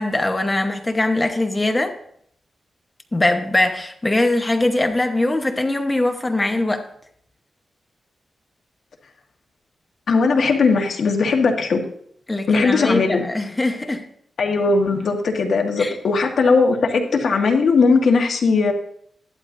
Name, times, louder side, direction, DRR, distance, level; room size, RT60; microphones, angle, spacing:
voice 1, 0.0-1.9 3.1-6.9 12.3-14.0 15.8-16.0, left 2 dB, 20° left, 6 dB, 1.0 m, -21 dB
voice 2, 10.1-11.8 12.5-13.2 14.4-18.7, left 4 dB, 75° left, 3 dB, 1.5 m, -18 dB
14.0 x 12.0 x 2.7 m, 0.66 s
wide cardioid pair, 125°, 0 cm